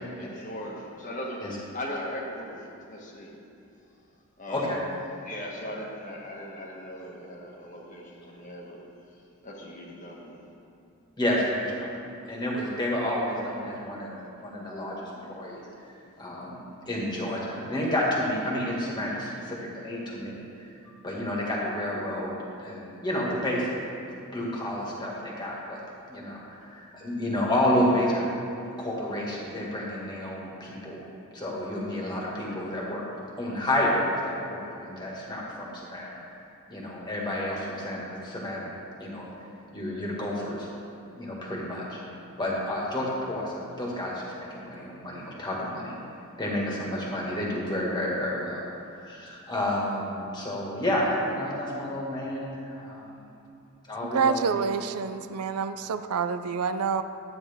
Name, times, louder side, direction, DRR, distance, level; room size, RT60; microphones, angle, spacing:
voice 1, 0.2-3.4 4.4-4.7 5.2-8.8 9.4-10.4, left 1 dB, 35° left, -2 dB, 1.4 m, -39 dB
voice 2, 4.5-4.8 11.2-15.6 16.2-23.8 24.3-25.8 26.1-28.3 28.8-31.0 31.3-33.0 33.4-36.2 36.7-38.7 39.0-39.3 39.7-40.7 41.1-42.0 42.4-45.9 46.4-48.6 49.0-53.2 53.9-54.6, left 1 dB, 20° left, -4 dB, 1.8 m, -30 dB
voice 3, 54.0-57.0, right 6 dB, 90° right, 11 dB, 0.4 m, -27 dB
12.0 x 9.3 x 3.6 m, 2.6 s
head